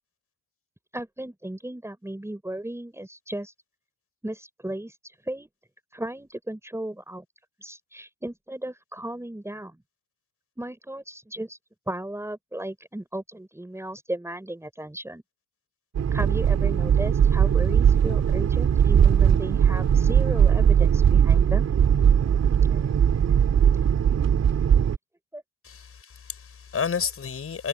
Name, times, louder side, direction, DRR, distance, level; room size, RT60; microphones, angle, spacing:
voice 1, 0.9-3.5 4.2-4.9 5.2-5.5 5.9-7.2 7.6-9.8 10.6-11.6 11.9-15.2 16.1-21.7 22.7-22.9 25.3-25.4, right 1 dB, 10° right, 4.7 m, -35 dB
sound 1, 15.9-25.0, right 8 dB, 50° right, 3.0 m, -19 dB
voice 2, 25.6-27.7, left 6 dB, 45° left, 6.5 m, -31 dB
supercardioid pair, 65°, 33 cm